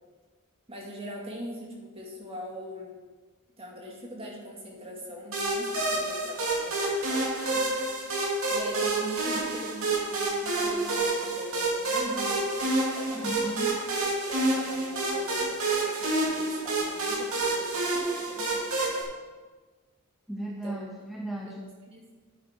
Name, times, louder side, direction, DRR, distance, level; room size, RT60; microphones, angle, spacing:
voice 1, 0.7-3.0 3.6-7.7 8.5-13.4 14.1-19.2 20.6-20.7 21.5-22.1, equal, 25° right, -2 dB, 2.2 m, -42 dB
sound 1, 5.3-19.0, right 2 dB, 70° right, 2.6 m, -28 dB
voice 2, 13.1-13.8 20.3-21.7, right 1 dB, ahead, -1 dB, 0.6 m, -36 dB
9.6 x 9.3 x 4.5 m, 1.3 s
head